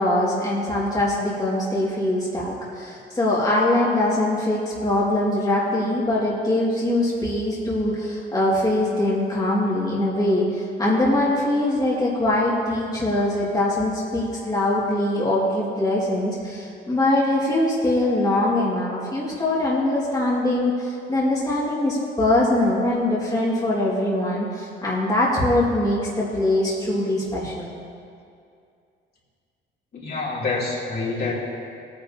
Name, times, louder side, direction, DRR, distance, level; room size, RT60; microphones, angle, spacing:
voice 1, 0.0-27.7, left 1 dB, 20° left, -7 dB, 2.2 m, -22 dB
voice 2, 29.9-31.3, left 3 dB, 50° left, -6 dB, 2.8 m, -27 dB
16.5 x 9.5 x 2.8 m, 2.4 s
cardioid pair, 90°, 20 cm